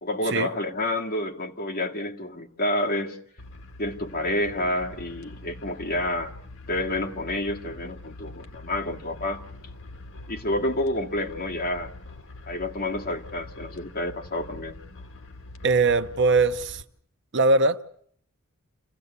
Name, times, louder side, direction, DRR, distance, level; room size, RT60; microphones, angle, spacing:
voice 1, 0.0-3.2 3.8-6.3 6.7-9.4 10.3-11.9 12.5-14.8, left 1 dB, 45° left, 2.2 m, -29 dB
sound 1, 3.4-16.8, left 2 dB, 65° left, 1.7 m, -44 dB
voice 2, 15.6-16.8 17.3-17.8, right 3 dB, 55° right, 0.9 m, -21 dB
27.5 x 16.0 x 8.2 m
head